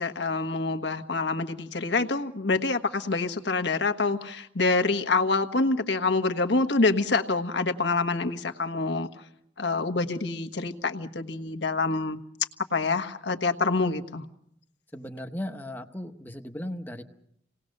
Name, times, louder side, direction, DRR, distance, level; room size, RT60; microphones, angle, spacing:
voice 1, 0.0-9.1 9.6-12.2 12.7-14.2, left 3 dB, 75° left, 6 dB, 1.4 m, -26 dB
voice 2, 14.9-17.0, left 1 dB, 10° left, 6 dB, 1.0 m, -36 dB
28.0 x 19.0 x 6.6 m, 0.73 s
head